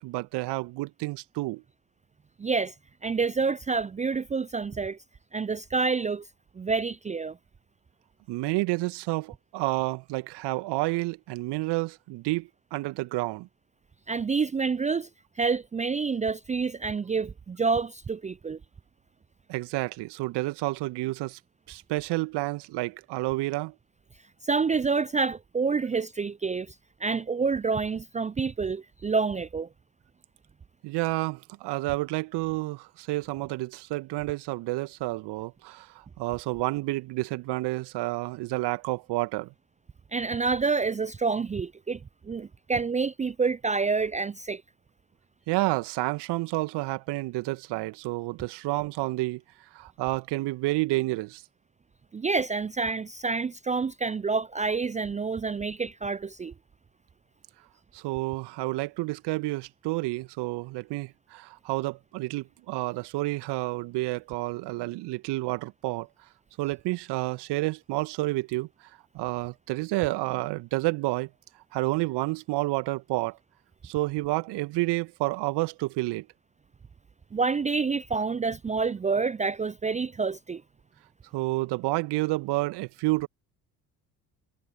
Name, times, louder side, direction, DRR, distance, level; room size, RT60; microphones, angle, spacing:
voice 1, 0.0-1.6 8.3-13.5 19.5-21.4 21.7-23.7 30.8-39.5 45.5-49.4 49.7-51.4 57.9-66.1 66.6-68.7 69.1-71.3 71.7-73.4 73.8-76.3 81.3-83.3, right 20 dB, 55° right, 2.3 m, -30 dB
voice 2, 2.4-2.7 3.0-5.0 5.3-6.3 6.6-7.4 14.1-15.1 15.4-18.6 24.4-26.7 27.0-29.7 40.1-44.6 52.1-56.5 77.3-80.6, right 4 dB, 15° right, 0.6 m, -28 dB
figure-of-eight pair, 55°, 48 cm